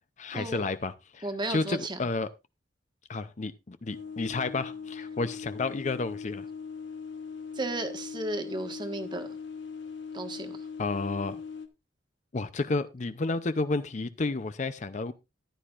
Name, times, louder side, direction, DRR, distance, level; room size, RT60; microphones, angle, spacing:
voice 1, 0.2-2.3 3.1-6.5 10.8-11.4 12.3-15.1, left 3 dB, 40° left, 0.5 m, -31 dB
voice 2, 1.2-2.0 7.5-9.3 10.1-10.6, right 2 dB, 25° right, 1.4 m, -34 dB
sound 1, 3.9-11.7, left 5 dB, 80° left, 1.3 m, -40 dB
14.5 x 10.5 x 2.4 m
head